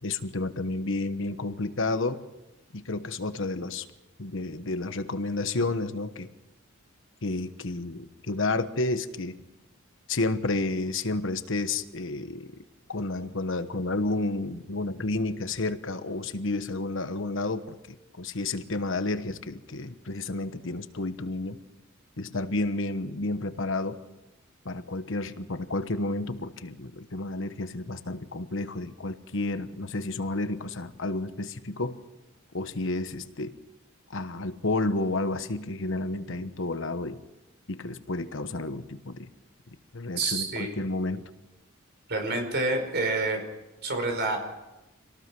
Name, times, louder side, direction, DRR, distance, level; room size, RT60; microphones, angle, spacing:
voice 1, 0.0-2.2 2.7-3.9 4.2-6.3 7.2-9.4 10.1-12.5 12.9-21.6 22.2-24.0 24.6-32.0 32.5-33.6 34.1-37.2 37.7-39.3 39.9-41.3, left 2 dB, 65° left, 10 dB, 1.2 m, -31 dB
voice 2, 40.2-40.8 42.1-43.4 43.8-44.4, right 3 dB, 55° right, 5 dB, 5.0 m, -28 dB
26.5 x 18.5 x 6.2 m, 1.0 s
head